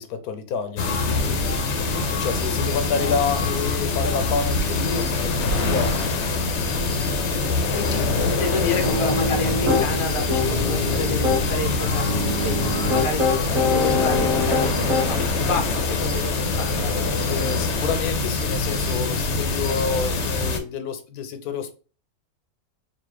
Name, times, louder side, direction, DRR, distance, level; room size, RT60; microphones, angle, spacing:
voice 1, 0.0-1.8 2.1-6.0 6.8-7.6 17.3-21.8, left 5 dB, 80° left, 1.1 m, -29 dB
sound 1, 0.8-20.6, left 3 dB, 60° left, 0.9 m, -24 dB
voice 2, 7.7-16.9, left 2 dB, 35° left, 0.5 m, -30 dB
Piano, 8.8-9.9 10.3-11.4 12.1-15.3, left 3 dB, 30° right, 0.9 m, -24 dB
sound 2, 9.6-16.2, right 1 dB, 60° right, 1.3 m, -38 dB
4.1 x 2.4 x 3.1 m
omnidirectional pair, 1.6 m